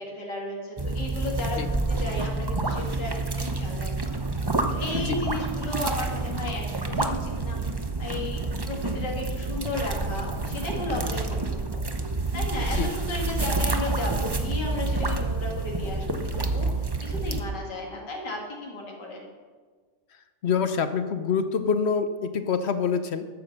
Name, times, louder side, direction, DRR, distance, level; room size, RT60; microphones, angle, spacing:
voice 1, 0.0-4.2 4.7-11.8 12.3-19.3, left 2 dB, 85° left, -1 dB, 2.9 m, -34 dB
sound 1, 0.8-17.4, right 2 dB, 30° right, 0.4 m, -28 dB
voice 2, 20.4-23.3, left 6 dB, 55° left, 10 dB, 0.8 m, -26 dB
13.0 x 9.5 x 6.6 m, 1.5 s
omnidirectional pair, 1.8 m